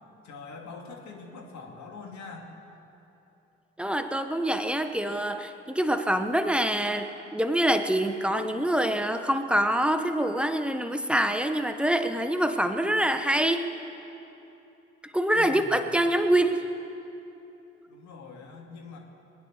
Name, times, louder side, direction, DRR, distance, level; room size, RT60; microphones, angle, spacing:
voice 1, 0.2-2.5 15.3-15.9 17.9-19.0, left 4 dB, 60° left, 1 dB, 2.4 m, -43 dB
voice 2, 3.8-13.7 15.0-16.7, right 1 dB, 5° right, 8 dB, 1.2 m, -25 dB
21.0 x 9.6 x 6.7 m, 2.9 s
hypercardioid pair, 45°, 32 cm